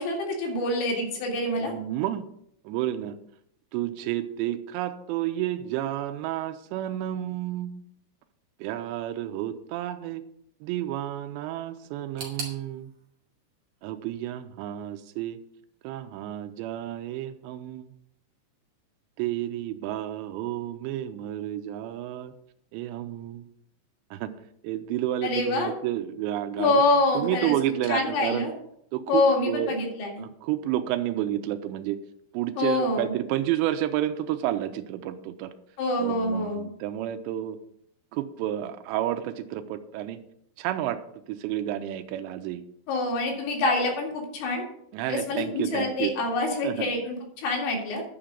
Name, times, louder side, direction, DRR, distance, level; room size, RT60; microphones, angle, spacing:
voice 1, 0.0-1.7 25.2-25.7 26.6-27.6 27.9-28.5 29.1-30.2 32.6-33.1 35.8-36.6 42.9-44.6 45.1-48.0, left 2 dB, 85° left, 0 dB, 4.5 m, -26 dB
voice 2, 1.6-2.2 2.6-3.2 3.7-7.8 8.6-10.2 10.6-12.9 13.8-15.4 15.8-17.9 19.2-22.3 22.7-23.5 24.1-24.3 24.6-26.7 27.1-28.5 28.9-29.7 30.2-32.0 32.3-35.5 36.0-37.6 38.1-40.2 40.6-41.0 41.3-42.6 44.9-46.1 46.6-46.9, right 12 dB, 85° right, 8 dB, 2.8 m, -30 dB
sound 1, 12.2-15.0 15.3-16.1 16.4-16.5 17.4-17.5, right 3 dB, 45° right, 3.0 m, -43 dB
11.0 x 5.1 x 7.4 m, 0.73 s
omnidirectional pair, 5.2 m